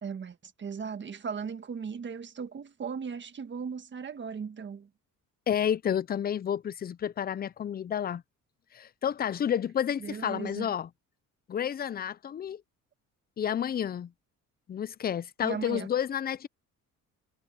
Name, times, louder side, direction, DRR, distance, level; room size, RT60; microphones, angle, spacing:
voice 1, 0.0-4.9 10.0-10.7 15.4-15.9, right 6 dB, 35° right, 1.6 m, -37 dB
voice 2, 5.5-8.2 8.7-10.9 11.5-12.6 13.4-14.1 14.7-16.5, left 9 dB, 30° left, 0.5 m, -30 dB
cardioid pair, 120°, 32 cm